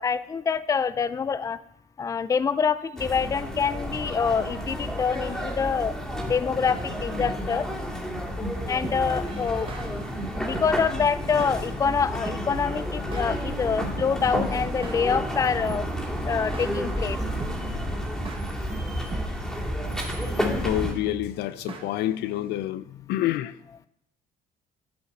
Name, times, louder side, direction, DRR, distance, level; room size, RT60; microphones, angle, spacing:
voice 1, 0.0-1.6 2.0-5.9 6.3-7.7 8.4-9.7 10.4-15.9 16.2-17.2, left 6 dB, 20° left, 0.4 m, -26 dB
sound 1, 3.0-20.9, equal, ahead, 2.2 m, -31 dB
sound 2, 8.8-22.6, right 4 dB, 30° right, 1.2 m, -41 dB
voice 2, 20.3-23.5, left 14 dB, 80° left, 0.5 m, -28 dB
12.0 x 5.6 x 4.2 m
cardioid pair, 110°, 17 cm